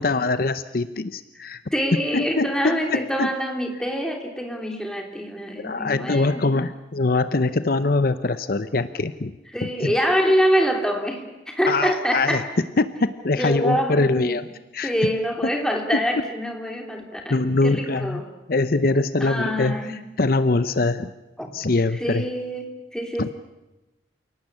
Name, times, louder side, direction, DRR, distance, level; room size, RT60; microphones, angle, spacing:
voice 1, 0.0-1.6 2.1-3.3 5.6-9.3 9.8-9.9 11.7-12.4 12.8-14.5 14.7-14.9 15.9-16.0 17.3-18.2 18.5-21.1 21.5-22.3 23.2-23.3, left 3 dB, 55° left, 12 dB, 0.8 m, -23 dB
voice 2, 1.4-6.5 9.5-12.4 13.4-14.4 14.8-18.3 19.2-20.0 21.4-21.5 21.9-23.3, equal, 5° left, 2 dB, 3.1 m, -25 dB
28.5 x 18.5 x 8.6 m, 1.0 s
head